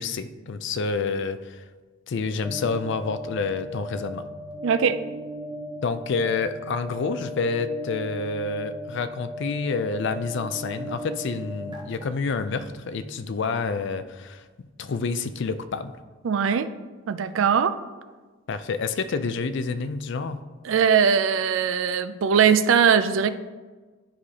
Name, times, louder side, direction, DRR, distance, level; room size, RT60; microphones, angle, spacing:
voice 1, 0.0-1.6 2.1-4.2 5.8-14.4 14.8-16.0 18.5-20.4, left 4 dB, 60° left, 11 dB, 0.4 m, -28 dB
sound 1, 2.4-13.0, equal, 25° right, 0.9 m, -37 dB
voice 2, 4.6-5.0 16.2-16.7 17.1-17.8 20.6-23.3, right 7 dB, 70° right, 11 dB, 0.4 m, -20 dB
10.5 x 4.8 x 2.9 m, 1.3 s
head